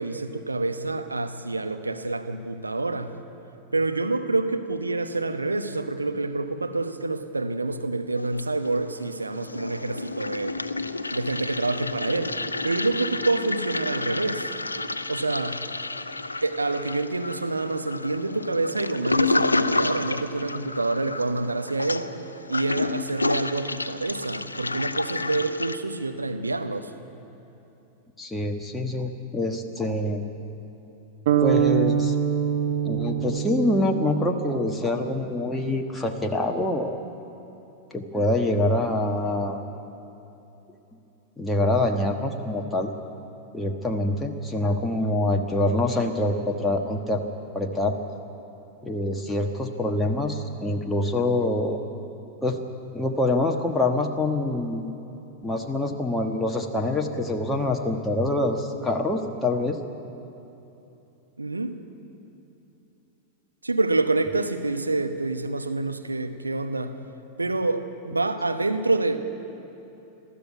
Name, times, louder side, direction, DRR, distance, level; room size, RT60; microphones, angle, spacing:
voice 1, 0.0-3.1 3.7-10.6 11.1-12.3 12.6-14.5 15.1-15.6 16.4-22.1 22.5-26.9 61.4-61.8 63.6-67.0 67.4-69.2, right 2 dB, 80° right, 7 dB, 1.1 m, -27 dB
Toilet flush, 8.2-9.0 9.3-25.8, left 3 dB, 80° left, 0.6 m, -30 dB
voice 2, 28.2-30.2 31.4-32.1 32.8-37.0 37.9-39.6 41.4-42.9 43.5-47.2 47.5-47.9 48.8-51.8 52.4-52.6 52.9-54.9 55.4-59.8, left 1 dB, 10° left, 1 dB, 1.3 m, -25 dB
sound 1, 31.3-35.2, right 9 dB, 55° right, 1.3 m, -25 dB
21.0 x 14.0 x 9.4 m, 3.0 s
figure-of-eight pair, 90°, 0 cm